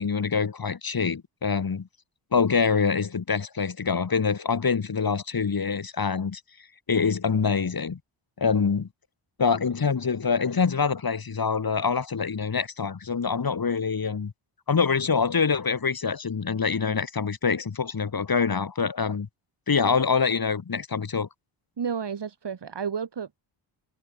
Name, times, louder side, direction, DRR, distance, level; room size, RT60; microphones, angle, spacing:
voice 1, 0.0-1.9 2.3-6.4 6.9-8.0 8.4-8.9 9.4-14.3 14.7-19.3 19.7-21.3, left 5 dB, 45° left, 3.0 m, -25 dB
voice 2, 21.8-23.4, right 6 dB, 55° right, 3.7 m, -31 dB
cardioid pair, 70°, 49 cm